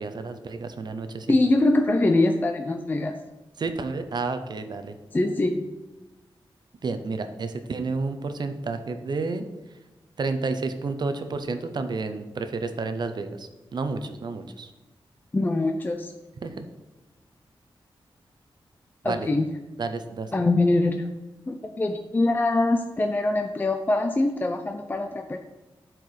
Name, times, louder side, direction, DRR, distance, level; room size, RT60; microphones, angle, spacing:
voice 1, 0.0-1.4 3.6-4.9 6.8-9.4 10.2-14.7 16.4-16.6 19.0-19.3 19.8-20.3, right 3 dB, 55° right, 9 dB, 0.7 m, -30 dB
voice 2, 1.3-3.1 5.1-5.7 15.3-16.1 19.0-19.4 20.3-21.1 21.5-25.4, left 2 dB, 20° left, 5 dB, 0.5 m, -23 dB
12.0 x 4.6 x 5.0 m, 1.1 s
wide cardioid pair, 145°, 9 cm